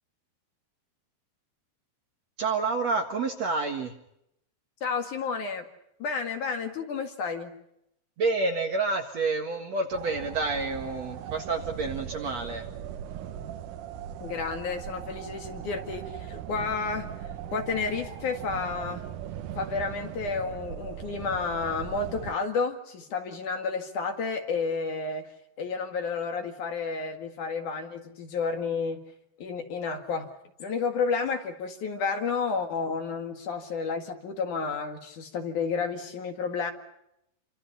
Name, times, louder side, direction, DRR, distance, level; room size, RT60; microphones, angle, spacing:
voice 1, 2.4-3.9 8.2-12.7, right 3 dB, 50° right, 4 dB, 2.3 m, -29 dB
voice 2, 4.8-5.6 6.0-7.5 14.2-17.1 17.5-19.0 19.6-25.3 25.6-29.0 29.4-30.3 30.6-36.7, left 5 dB, 55° left, 5 dB, 3.1 m, -31 dB
sound 1, 9.9-22.3, right 10 dB, 65° right, 2.2 m, -39 dB
29.0 x 25.5 x 5.6 m, 0.80 s
omnidirectional pair, 4.7 m